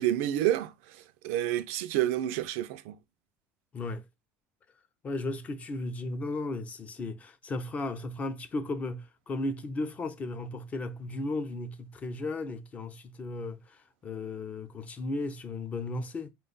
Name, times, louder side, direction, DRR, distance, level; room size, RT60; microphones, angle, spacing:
voice 1, 0.0-3.0, right 13 dB, 90° right, 0.4 m, -29 dB
voice 2, 3.7-4.1 5.0-16.3, left 2 dB, 20° left, 0.5 m, -35 dB
4.9 x 2.3 x 3.8 m
cardioid pair, 160°, 7 cm